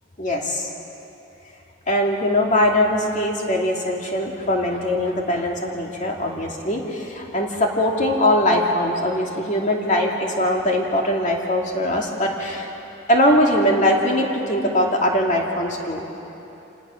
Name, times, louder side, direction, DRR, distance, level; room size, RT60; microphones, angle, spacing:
voice 1, 0.2-0.7 1.9-12.7 13.1-16.1, left 1 dB, 40° left, 0 dB, 2.5 m, -21 dB
27.0 x 19.0 x 6.4 m, 3.0 s
head